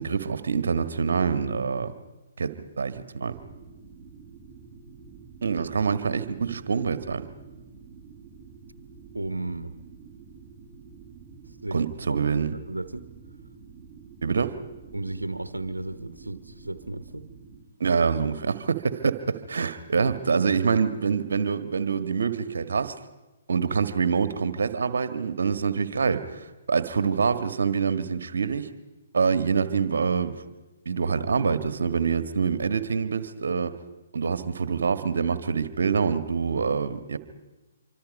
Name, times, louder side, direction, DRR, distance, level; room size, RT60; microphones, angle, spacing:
voice 1, 0.0-1.9 2.4-3.4 5.4-7.3 11.7-12.5 14.2-14.6 17.8-23.0 23.5-28.7 29.1-30.4 30.8-33.8 34.1-37.2, right 5 dB, 65° right, 11 dB, 1.6 m, -26 dB
sound 1, 3.3-17.6, right 5 dB, 20° right, 3.4 m, -48 dB
voice 2, 9.1-9.7 11.6-11.8 12.1-13.1 14.9-17.3, right 2 dB, 90° right, 11 dB, 1.1 m, -34 dB
26.0 x 25.0 x 5.4 m, 1.1 s
figure-of-eight pair, 130°, 0 cm